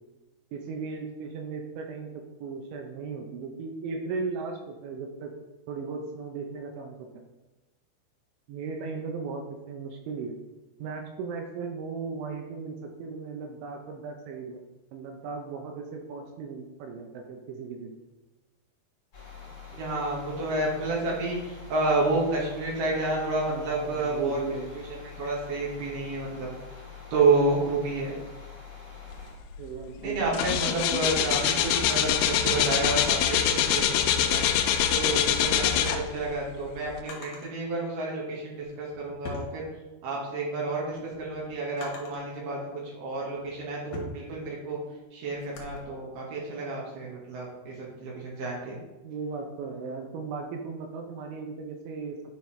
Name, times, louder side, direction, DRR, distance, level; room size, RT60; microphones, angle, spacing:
voice 1, 0.5-5.3 5.7-7.1 8.5-10.3 10.8-14.6 14.9-18.0 23.5-24.7 29.6-30.4 49.0-52.2, right 4 dB, 80° right, 3 dB, 2.8 m, -36 dB
sound 1, 19.1-29.3, left 6 dB, 35° left, 1.4 m, -45 dB
voice 2, 19.7-24.4 25.2-26.5 27.1-28.1 30.0-34.5 34.9-39.6 40.0-44.8 45.1-48.8, right 3 dB, 65° right, -4 dB, 2.9 m, -30 dB
sound 2, 29.6-29.8 30.1-36.3 36.9-37.0, left 9 dB, 85° left, 3.0 m, -24 dB
Drawer open or close, 37.0-37.5 38.5-40.2 40.6-42.3 43.0-45.8, left 2 dB, 65° left, 2.3 m, -44 dB
10.5 x 5.3 x 3.2 m, 1.1 s
omnidirectional pair, 5.8 m